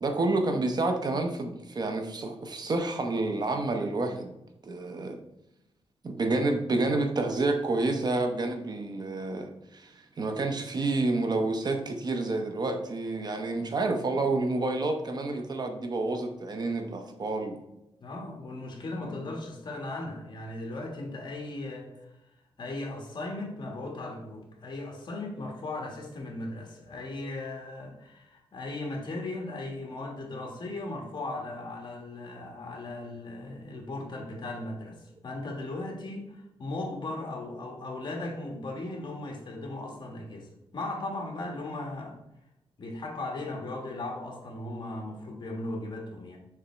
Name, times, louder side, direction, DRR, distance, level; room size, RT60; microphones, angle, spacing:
voice 1, 0.0-4.3 4.6-5.2 6.0-17.6, right 2 dB, 40° right, 5 dB, 0.7 m, -29 dB
voice 2, 18.0-22.1 22.6-35.0 35.2-40.5 40.7-42.2 42.8-46.4, left 2 dB, 45° left, 0 dB, 1.5 m, -37 dB
6.7 x 3.5 x 4.3 m, 0.87 s
wide cardioid pair, 145°, 10 cm